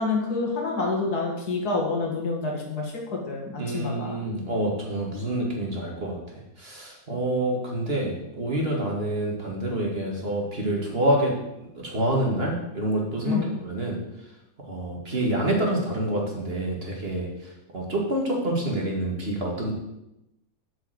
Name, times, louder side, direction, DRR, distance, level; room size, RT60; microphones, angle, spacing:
voice 1, 0.0-4.2 13.2-13.6, left 3 dB, 80° left, 0 dB, 2.5 m, -28 dB
voice 2, 3.6-6.2 6.6-11.3 11.7-14.0 14.6-17.3 17.7-19.7, right 1 dB, 40° right, -1 dB, 2.2 m, -27 dB
7.9 x 5.6 x 7.8 m, 0.90 s
omnidirectional pair, 1.6 m